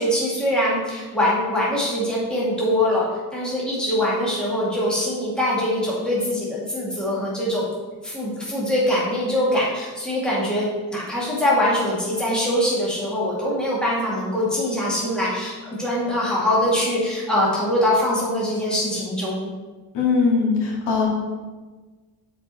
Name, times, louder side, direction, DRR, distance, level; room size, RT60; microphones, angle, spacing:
voice 1, 0.0-3.1 3.3-7.7 8.0-19.5, left 1 dB, ahead, -7 dB, 2.0 m, -23 dB
voice 2, 19.9-21.1, left 5 dB, 65° left, -3 dB, 2.4 m, -20 dB
7.1 x 5.0 x 4.2 m, 1.3 s
cardioid pair, 135°, 45 cm